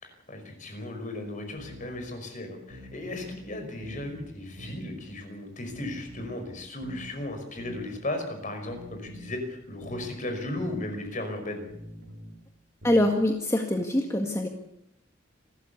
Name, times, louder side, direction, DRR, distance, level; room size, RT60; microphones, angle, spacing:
voice 1, 0.0-11.6, left 1 dB, 40° left, 6 dB, 5.4 m, -36 dB
sound 1, 1.6-1.9 2.7-3.4 3.8-4.2 4.6-4.9 5.7-6.4 6.8-7.1 7.6-7.9 8.7-9.4 9.8-10.1 10.6-10.9 11.7-12.4 12.8-13.2, equal, 75° right, 4.2 m, -44 dB
voice 2, 12.8-14.5, left 1 dB, 15° left, 3 dB, 1.9 m, -24 dB
28.0 x 14.0 x 8.4 m, 0.77 s
head